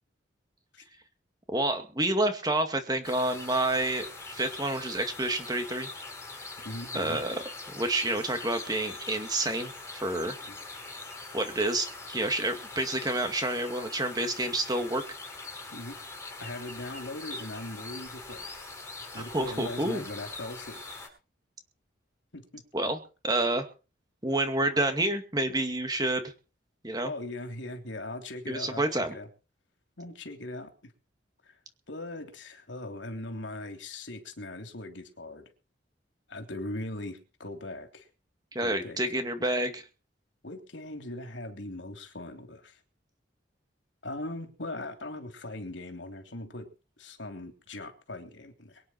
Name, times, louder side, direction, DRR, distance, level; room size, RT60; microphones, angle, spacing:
voice 1, 1.5-5.9 6.9-10.3 11.3-15.0 19.1-20.0 22.7-23.7 24.2-26.3 26.8-27.1 28.5-29.1 38.5-39.8, right 2 dB, 20° right, 6 dB, 2.3 m, -29 dB
sound 1, 3.0-21.1, left 3 dB, 15° left, 6.9 m, -42 dB
voice 2, 6.6-7.2 10.4-10.6 15.7-18.5 19.1-21.1 22.3-22.6 27.0-29.3 30.0-30.9 31.4-31.6 31.9-35.5 36.3-38.1 38.6-39.0 40.4-42.8 44.0-46.7 47.0-48.8, left 2 dB, 80° left, 5 dB, 3.2 m, -40 dB
24.0 x 9.6 x 4.5 m, 0.34 s
head